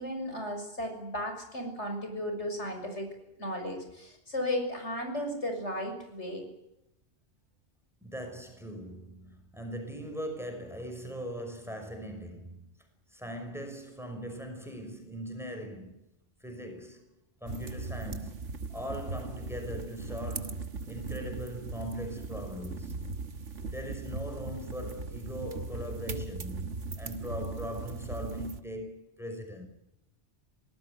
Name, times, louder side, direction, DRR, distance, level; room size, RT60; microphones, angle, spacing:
voice 1, 0.0-3.1 3.4-6.4, left 1 dB, 70° left, 6.8 m, -35 dB
voice 2, 8.0-12.7 13.1-16.0 16.4-17.1 17.4-23.2 23.7-29.7, equal, ahead, 5.8 m, -40 dB
sound 1, 17.5-28.6, right 3 dB, 85° right, 1.9 m, -39 dB
25.0 x 18.5 x 9.6 m
omnidirectional pair, 1.2 m